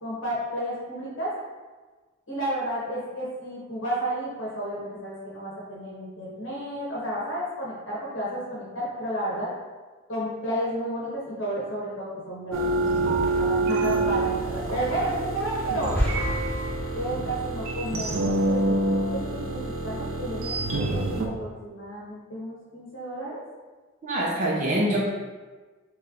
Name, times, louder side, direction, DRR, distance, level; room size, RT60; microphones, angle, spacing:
voice 1, 0.0-1.3 2.3-9.5 10.1-16.0 16.9-23.4, right 1 dB, 70° left, -6 dB, 1.2 m, -32 dB
sound 1, 12.5-21.3, right 2 dB, 75° right, 0.5 m, -27 dB
sound 2, 15.9-17.6, equal, 10° left, 0.6 m, -30 dB
voice 2, 24.0-25.0, right 1 dB, 40° right, -6 dB, 0.8 m, -24 dB
3.2 x 3.2 x 3.7 m, 1.3 s
head